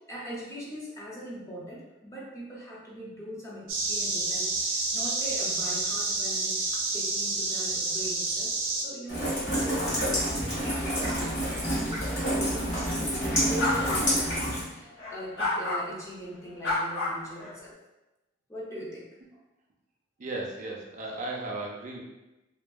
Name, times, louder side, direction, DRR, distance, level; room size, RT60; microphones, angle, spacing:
voice 1, 0.1-17.8 18.5-19.4, right 1 dB, 15° left, -4 dB, 0.5 m, -41 dB
sound 1, 3.7-8.8, right 3 dB, 90° right, 0.5 m, -29 dB
Rain, 9.1-14.6, equal, 40° left, 1.1 m, -28 dB
sound 2, 13.6-14.0 15.0-15.8 16.6-17.5, left 2 dB, 70° left, 0.9 m, -29 dB
voice 2, 20.2-22.0, right 2 dB, 40° right, -2 dB, 0.5 m, -35 dB
2.7 x 2.5 x 2.2 m, 1.0 s
head